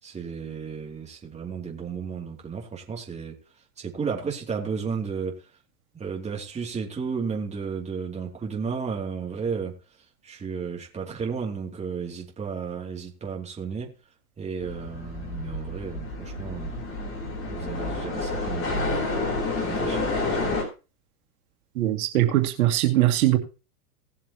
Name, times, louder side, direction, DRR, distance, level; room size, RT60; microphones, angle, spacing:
voice 1, 0.0-3.4 3.8-5.5 5.9-9.8 10.2-13.9 14.4-16.7 17.5-19.1 19.6-20.5, right 6 dB, 15° right, -1 dB, 2.8 m, -33 dB
sound 1, 14.6-20.6, left 3 dB, 30° left, 4.0 m, -29 dB
voice 2, 21.8-23.4, right 14 dB, 70° right, 4 dB, 2.4 m, -21 dB
18.5 x 7.4 x 3.0 m, 0.32 s
supercardioid pair, 130°, 44 cm